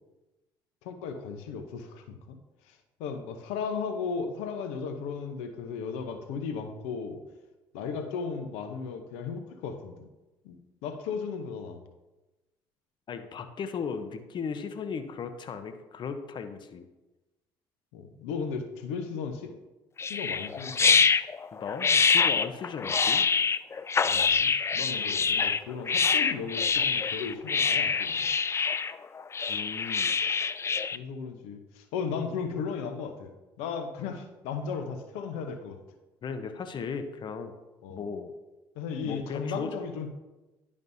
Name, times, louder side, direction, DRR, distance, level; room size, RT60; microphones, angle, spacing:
voice 1, 0.8-2.4 2.7-7.2 7.7-10.1 10.4-10.6 10.8-11.8 17.9-19.6 20.0-21.0 22.8-22.9 24.0-28.3 30.3-30.4 30.9-35.8 37.8-38.1 38.8-40.1, left 5 dB, 80° left, 6 dB, 0.8 m, -36 dB
voice 2, 13.1-16.9 21.5-23.3 29.5-30.2 36.2-37.5 37.9-38.3 39.0-39.7, left 6 dB, 50° left, 8 dB, 0.8 m, -36 dB
sound 1, 20.0-31.0, left 5 dB, 25° left, 0.3 m, -25 dB
10.5 x 5.2 x 2.7 m, 1.1 s
supercardioid pair, 70°, 10 cm